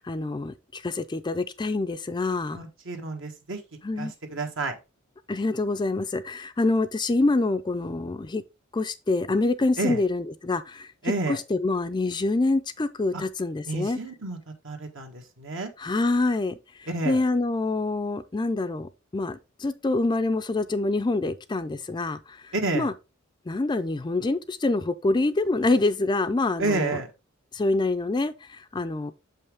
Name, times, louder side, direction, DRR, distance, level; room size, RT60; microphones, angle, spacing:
voice 1, 0.0-2.6 3.8-4.1 5.3-8.4 8.7-14.0 15.8-22.9 23.5-27.0 27.5-29.1, left 2 dB, 20° left, 0.4 m, -26 dB
voice 2, 2.5-3.6 4.0-4.7 9.8-10.0 11.0-11.4 13.1-13.2 13.7-14.4 14.6-15.7 16.9-17.2 22.5-22.9 26.6-27.1, right 3 dB, 65° right, 1.4 m, -30 dB
7.0 x 5.5 x 3.4 m
head